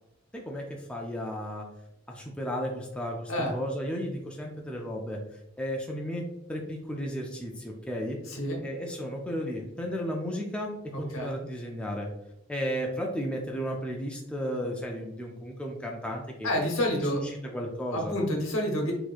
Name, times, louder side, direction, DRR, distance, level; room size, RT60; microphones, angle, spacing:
voice 1, 0.3-1.7 2.1-12.1 12.5-16.5 17.1-18.2, equal, 5° left, -1 dB, 0.3 m, -34 dB
voice 2, 8.3-8.6 11.1-11.4 16.4-17.2 17.9-18.9, equal, 70° left, 1 dB, 0.9 m, -28 dB
4.2 x 2.8 x 2.4 m, 0.84 s
head